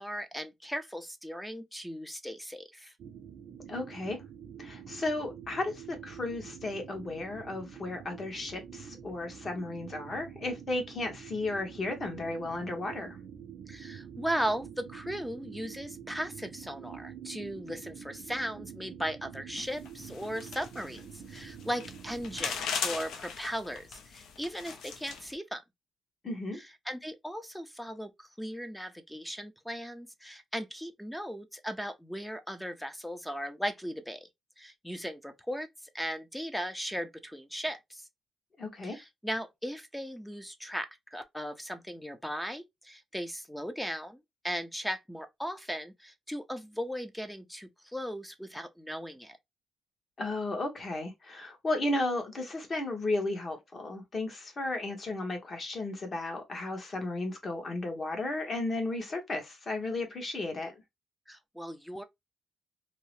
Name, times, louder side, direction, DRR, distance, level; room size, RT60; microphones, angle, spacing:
voice 1, 0.0-2.9 13.7-25.6 26.5-34.3 34.6-35.7 35.9-38.1 38.8-44.2 44.4-49.4 61.3-62.0, equal, 5° left, 0.4 m, -37 dB
sound 1, 3.0-22.5, right 8 dB, 65° right, 0.5 m, -47 dB
voice 2, 3.7-4.2 4.6-13.2 26.2-26.6 38.6-39.0 50.2-60.7, left 2 dB, 35° left, 1.0 m, -34 dB
sound 2, 19.6-25.3, left 6 dB, 80° left, 0.5 m, -39 dB
2.7 x 2.0 x 3.0 m
cardioid pair, 105°, 0 cm